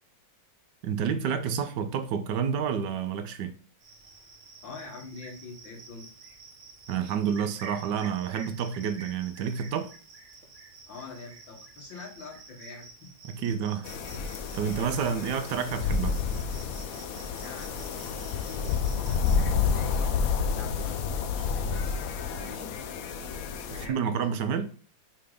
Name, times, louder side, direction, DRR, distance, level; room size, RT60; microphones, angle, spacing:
voice 1, 0.8-3.5 6.9-9.9 13.2-13.9 14.5-16.2 23.7-24.7, right 7 dB, 70° right, 1.2 m, -29 dB
Cricket, 3.8-19.4, right 4 dB, 45° right, 1.4 m, -50 dB
voice 2, 4.6-6.1 10.9-13.1 14.6-14.8 17.3-22.7 23.6-24.3, left 4 dB, 80° left, 2.4 m, -45 dB
sound 1, 13.8-23.9, left 5 dB, 65° left, 0.9 m, -30 dB
5.8 x 3.6 x 4.9 m
omnidirectional pair, 2.0 m